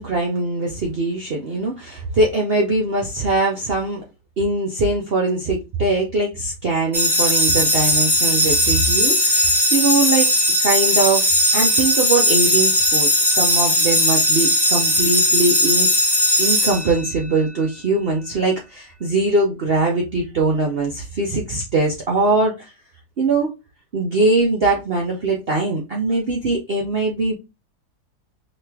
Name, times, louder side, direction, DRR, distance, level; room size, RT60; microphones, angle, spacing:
voice 1, 0.0-4.0 4.4-10.3 10.6-15.9 16.4-22.7 23.2-23.5 23.9-27.3, right 3 dB, 55° right, 0.7 m, -21 dB
sound 1, 6.9-17.4, equal, ahead, 0.6 m, -18 dB
3.2 x 2.9 x 3.3 m
omnidirectional pair, 1.7 m